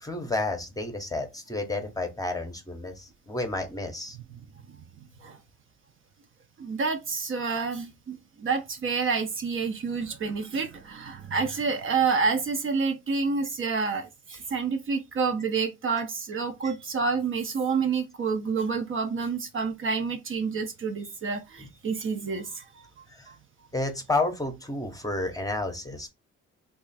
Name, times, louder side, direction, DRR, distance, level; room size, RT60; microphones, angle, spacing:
voice 1, 0.0-4.2 21.6-21.7 23.1-23.3 23.7-26.1, left 2 dB, 10° left, 0.8 m, -31 dB
voice 2, 4.1-4.8 5.2-5.4 6.6-22.9 23.3-23.4, right 5 dB, 45° right, 0.6 m, -29 dB
3.0 x 2.4 x 4.0 m
cardioid pair, 90°, 30 cm